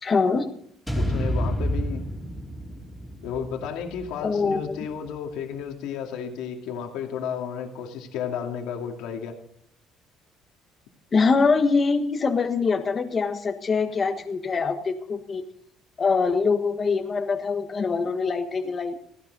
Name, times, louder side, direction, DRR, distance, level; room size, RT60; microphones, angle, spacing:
voice 1, 0.0-0.5 4.2-4.7 11.1-15.4 16.0-18.9, left 4 dB, 30° left, 6 dB, 1.4 m, -23 dB
voice 2, 0.9-2.1 3.2-9.3, left 7 dB, 85° left, 3 dB, 2.3 m, -33 dB
sound 1, 0.9-5.1, equal, ahead, 4.1 m, -30 dB
17.5 x 15.0 x 4.0 m, 0.66 s
cardioid pair, 135°, 0 cm